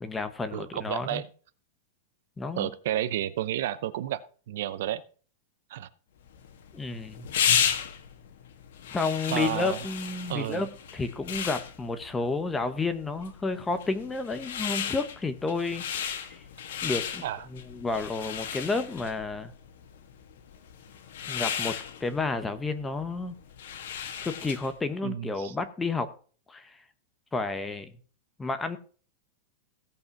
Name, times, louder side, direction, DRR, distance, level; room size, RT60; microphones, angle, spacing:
voice 1, 0.0-1.2 2.4-2.7 6.7-7.3 8.9-16.4 16.8-17.2 17.5-19.5 21.3-23.3 24.2-26.1 26.5-26.8 27.3-27.9 28.4-28.8, left 3 dB, 10° left, 11 dB, 0.9 m, -31 dB
voice 2, 0.5-1.3 2.6-4.2 4.5-5.0 5.7-5.9 9.3-9.8 10.3-10.7 17.2-17.5 25.0-25.5, right 12 dB, 60° right, 15 dB, 0.8 m, -31 dB
sound 1, 6.3-24.8, left 8 dB, 65° left, 1.9 m, -34 dB
16.5 x 5.5 x 5.9 m, 0.41 s
supercardioid pair, 170°, 0 cm